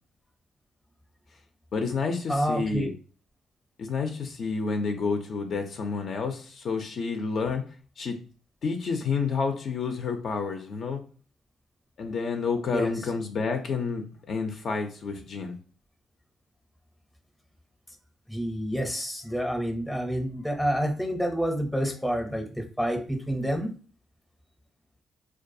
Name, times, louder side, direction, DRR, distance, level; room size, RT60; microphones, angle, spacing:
voice 1, 1.7-2.9 3.8-7.6 8.0-8.2 8.6-11.0 12.0-15.6, left 5 dB, 60° left, 5 dB, 0.4 m, -29 dB
voice 2, 2.3-2.9 12.7-12.9 18.3-23.8, equal, 5° left, 4 dB, 0.6 m, -28 dB
2.3 x 2.3 x 2.6 m, 0.40 s
cardioid pair, 90°, 0 cm